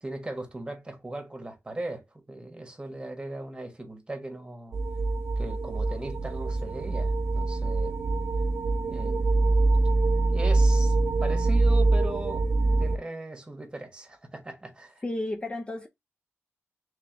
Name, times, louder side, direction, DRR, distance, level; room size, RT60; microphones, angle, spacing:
voice 1, 0.0-4.8 5.4-8.0 8.9-10.0 10.3-10.9 11.2-12.5 12.8-15.0, right 2 dB, 20° right, 1.3 m, -38 dB
sound 1, 4.7-13.0, right 2 dB, 60° right, 0.4 m, -24 dB
voice 2, 15.0-15.9, left 1 dB, 20° left, 0.5 m, -32 dB
3.4 x 3.4 x 3.4 m
wide cardioid pair, 110°, 5 cm